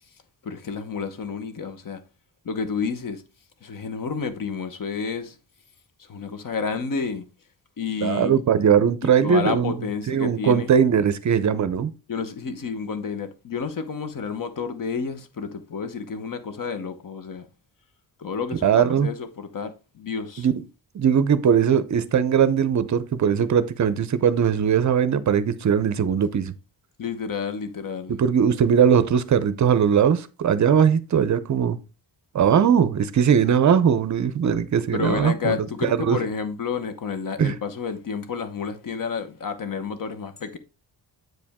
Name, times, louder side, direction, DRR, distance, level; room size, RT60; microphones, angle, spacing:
voice 1, 0.4-2.0 2.4-3.2 3.6-5.3 6.1-7.2 7.8-8.4 9.2-10.7 12.1-17.5 18.2-20.5 27.0-28.2 34.9-40.6, left 5 dB, 45° left, 0.9 m, -30 dB
voice 2, 8.0-9.7 10.1-11.9 18.6-19.1 20.4-20.5 20.9-26.5 28.2-31.8 32.3-36.2 37.4-37.6, right 7 dB, 40° right, 0.6 m, -20 dB
7.8 x 5.0 x 3.5 m
wide cardioid pair, 175°, 44 cm